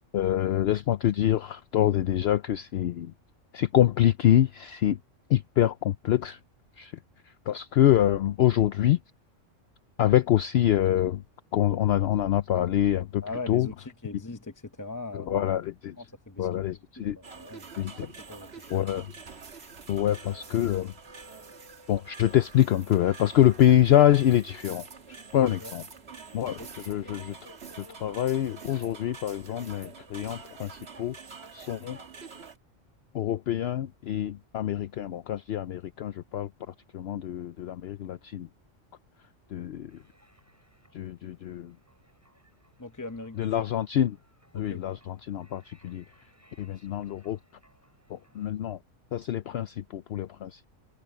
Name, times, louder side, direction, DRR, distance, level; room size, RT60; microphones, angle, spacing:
voice 1, 0.1-3.1 3.5-5.0 5.3-6.4 6.8-7.0 7.2-9.0 10.0-11.2 11.5-13.7 15.1-16.0 16.4-17.2 17.8-18.1 18.7-19.1 19.9-20.9 21.9-24.9 25.3-25.8 26.3-27.4 27.8-31.2 31.5-32.0 33.1-38.5 39.5-40.0 40.9-41.7 43.4-44.2 44.5-46.0 46.6-47.4 48.1-48.8 49.1-50.7, left 11 dB, 65° left, 0.7 m, -25 dB
voice 2, 13.2-15.5 16.0-16.5 17.0-17.7 17.9-18.8 25.6-25.7 26.4-26.7 42.8-43.6 44.5-44.8, left 2 dB, 20° left, 0.6 m, -40 dB
sound 1, 17.2-32.6, right 5 dB, 55° right, 1.8 m, -46 dB
sound 2, 39.9-48.5, equal, 10° right, 7.9 m, -64 dB
omnidirectional pair, 1.3 m